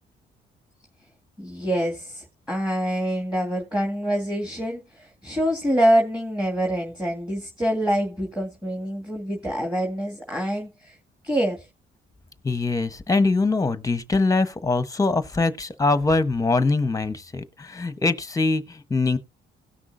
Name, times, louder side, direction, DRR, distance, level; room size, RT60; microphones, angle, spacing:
voice 1, 1.4-10.9 11.2-11.7, equal, 5° right, 2.2 m, -25 dB
voice 2, 12.4-19.2, left 3 dB, 15° left, 1.1 m, -23 dB
17.5 x 6.0 x 2.7 m
cardioid pair, 90°, 20 cm